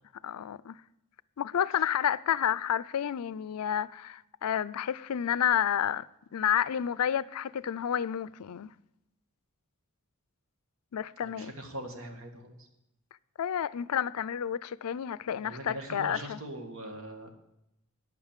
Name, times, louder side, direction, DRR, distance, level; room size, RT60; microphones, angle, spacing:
voice 1, 0.2-0.8 1.4-6.1 6.3-8.7 10.9-11.5 13.4-16.4, left 9 dB, 80° left, 0.4 m, -30 dB
voice 2, 11.2-12.7 15.4-17.3, right 1 dB, 65° right, 1.9 m, -41 dB
10.5 x 8.9 x 7.4 m
head